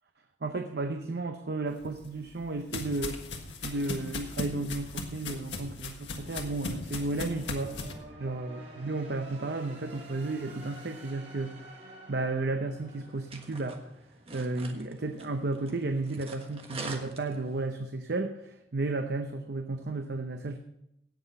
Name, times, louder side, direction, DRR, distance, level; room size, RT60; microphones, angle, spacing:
voice 1, 0.4-7.8 8.2-13.8 14.3-20.6, right 2 dB, 65° right, 6 dB, 0.7 m, -33 dB
sound 1, 1.8-7.9, left 3 dB, 90° left, 1.6 m, -38 dB
sound 2, 4.0-14.2, right 1 dB, 85° right, 5.7 m, -50 dB
sound 3, 12.8-17.7, right 3 dB, 35° right, 1.4 m, -46 dB
17.0 x 6.1 x 5.4 m, 0.81 s
head